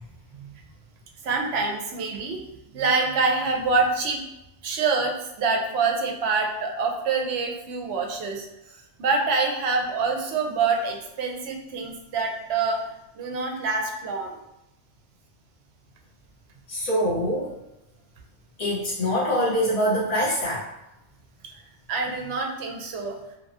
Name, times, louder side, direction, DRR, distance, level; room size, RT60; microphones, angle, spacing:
voice 1, 1.2-2.4 2.7-4.2 4.6-8.5 9.0-14.4 21.9-23.2, right 4 dB, 70° right, 2 dB, 0.8 m, -26 dB
voice 2, 16.7-17.5 18.6-20.6, equal, 35° left, -6 dB, 0.9 m, -24 dB
2.9 x 2.3 x 2.6 m, 0.90 s
omnidirectional pair, 1.2 m